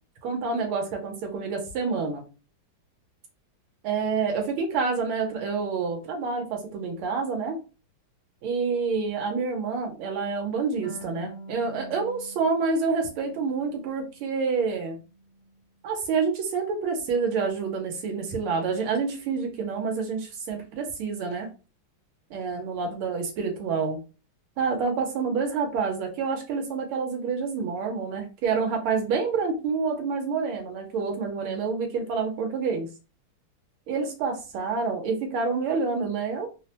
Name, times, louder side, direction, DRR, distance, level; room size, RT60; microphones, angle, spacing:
voice 1, 0.2-2.2 3.8-7.6 8.4-15.0 15.8-21.5 22.3-24.0 24.6-32.9 33.9-36.5, right 5 dB, 90° right, 2 dB, 1.5 m, -28 dB
Harp, 10.8-14.2 14.6-15.6, equal, 65° left, 0.6 m, -46 dB
3.5 x 2.0 x 2.8 m, 0.33 s
omnidirectional pair, 2.3 m